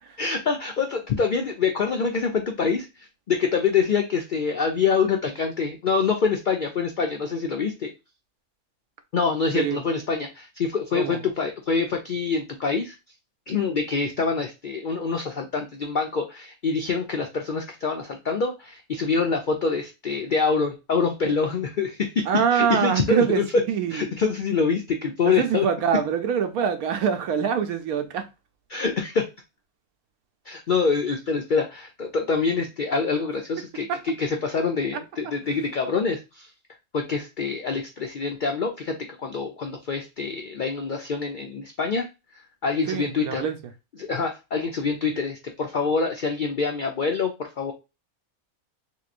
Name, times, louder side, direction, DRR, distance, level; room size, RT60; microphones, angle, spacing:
voice 1, 0.2-7.9 9.1-12.9 13.5-22.3 22.5-23.6 23.9-25.7 28.7-29.3 30.5-36.5 36.9-42.0 42.3-43.5 44.0-47.7, left 5 dB, 85° left, 0.4 m, -25 dB
voice 2, 22.3-23.4 23.7-24.0 25.3-28.2 33.9-34.0 42.9-43.6, right 7 dB, 80° right, 1.1 m, -24 dB
3.6 x 2.9 x 2.4 m
omnidirectional pair, 1.5 m